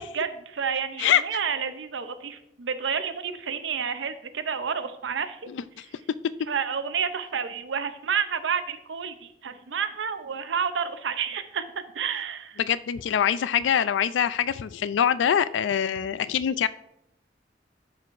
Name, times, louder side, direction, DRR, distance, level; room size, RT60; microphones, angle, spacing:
voice 1, 0.0-5.4 6.5-12.6, right 6 dB, 90° right, 10 dB, 0.6 m, -30 dB
voice 2, 5.5-5.8 12.6-16.7, left 9 dB, 85° left, 16 dB, 0.3 m, -24 dB
12.0 x 4.6 x 2.5 m, 0.81 s
head